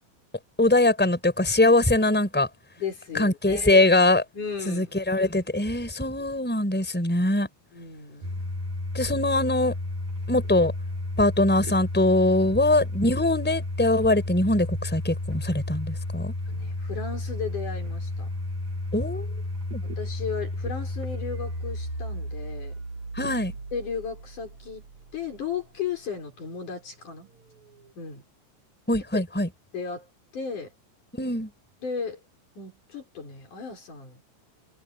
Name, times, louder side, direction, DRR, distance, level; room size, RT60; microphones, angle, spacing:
voice 1, 0.6-2.5 3.1-4.2 4.7-7.5 8.9-9.7 10.3-10.7 11.2-16.3 18.9-19.3 19.7-19.8 23.1-23.5 28.9-29.5 31.2-31.5, left 2 dB, 5° left, 5.2 m, -22 dB
voice 2, 2.8-3.9 4.3-4.9 7.7-8.5 12.4-12.6 16.5-18.3 20.0-22.8 23.7-24.8 25.1-27.3 28.0-28.2 29.1-29.2 29.7-30.7 31.8-32.2 32.6-34.2, left 6 dB, 55° left, 7.1 m, -35 dB
Domestic sounds home sounds, 8.2-25.1, left 1 dB, 50° right, 4.0 m, -33 dB
omnidirectional pair, 4.2 m